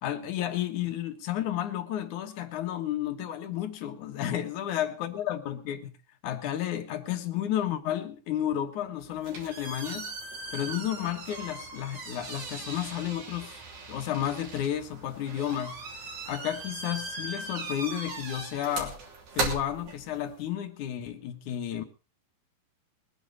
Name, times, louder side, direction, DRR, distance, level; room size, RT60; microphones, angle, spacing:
voice 1, 0.0-5.9 6.2-10.1 10.5-13.6 13.9-15.8 16.3-19.0 19.3-21.8, left 11 dB, 65° left, 2.6 m, -32 dB
sound 1, 9.0-20.4, right 3 dB, 55° right, 4.3 m, -38 dB
22.0 x 10.0 x 4.0 m
omnidirectional pair, 4.3 m